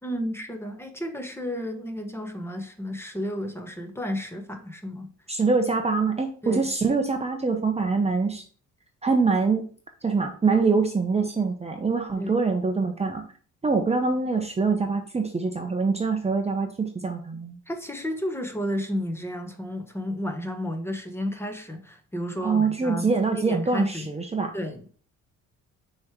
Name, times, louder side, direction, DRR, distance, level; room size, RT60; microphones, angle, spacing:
voice 1, 0.0-5.1 6.4-6.7 12.2-12.3 17.7-24.1 24.5-24.9, equal, 10° left, 1.1 m, -32 dB
voice 2, 5.3-8.4 9.0-9.7 10.0-13.2 13.6-17.6 22.4-24.5, right 4 dB, 20° right, 0.8 m, -24 dB
6.2 x 3.2 x 4.7 m
cardioid pair, 90°, 30 cm